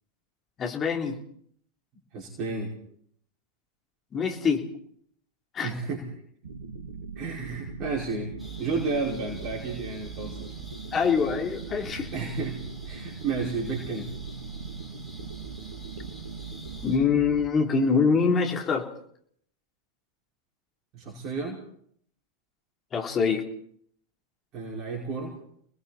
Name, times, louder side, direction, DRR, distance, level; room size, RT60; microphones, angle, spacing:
voice 1, 0.6-1.2 4.1-4.7 5.5-5.7 10.9-12.1 16.8-18.9 22.9-23.4, left 5 dB, 25° left, 2 dB, 3.3 m, -24 dB
voice 2, 2.1-2.7 5.6-6.1 7.2-8.3 8.6-10.6 12.1-12.6 12.9-14.1 20.9-21.6 24.5-25.4, right 4 dB, 35° right, -3 dB, 5.3 m, -32 dB
sound 1, 6.4-17.5, right 5 dB, 65° right, 1.7 m, -40 dB
sound 2, 8.4-17.0, left 1 dB, ahead, 7.1 m, -47 dB
30.0 x 20.0 x 4.3 m, 0.65 s
figure-of-eight pair, 90°, 0 cm